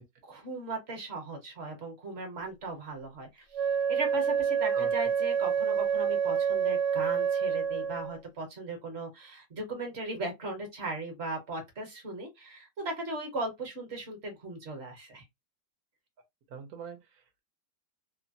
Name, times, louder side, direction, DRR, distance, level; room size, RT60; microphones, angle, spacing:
voice 1, 0.2-3.4 3.9-15.2, right 2 dB, 45° right, 1.1 m, -38 dB
Wind instrument woodwind instrument, 3.5-8.2, right 7 dB, 85° right, 1.2 m, -28 dB
voice 2, 16.5-17.4, right 6 dB, 65° right, 1.1 m, -44 dB
3.1 x 2.1 x 2.6 m
omnidirectional pair, 1.9 m